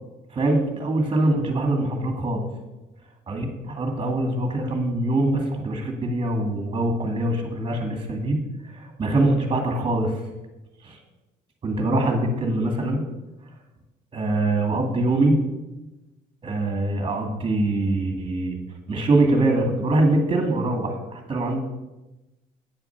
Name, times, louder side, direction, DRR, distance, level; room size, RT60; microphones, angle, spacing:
voice 1, 0.3-2.5 3.3-8.4 8.7-10.1 10.8-11.0 11.6-13.0 14.1-15.3 16.4-18.6 18.9-21.6, right 2 dB, 30° right, 3 dB, 2.2 m, -23 dB
9.2 x 7.0 x 6.0 m, 1.0 s
cardioid pair, 110°, 17 cm